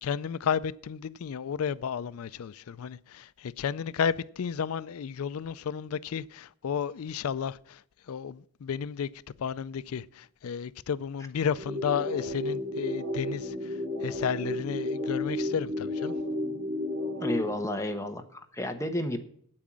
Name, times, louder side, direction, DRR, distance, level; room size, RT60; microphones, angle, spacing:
voice 1, 0.0-7.8 8.1-9.1 9.4-16.1, left 7 dB, 80° left, 0.4 m, -32 dB
sound 1, 11.6-17.6, left 1 dB, 45° right, 2.6 m, -32 dB
voice 2, 17.2-19.2, left 1 dB, 15° left, 1.0 m, -31 dB
8.8 x 8.4 x 7.4 m
head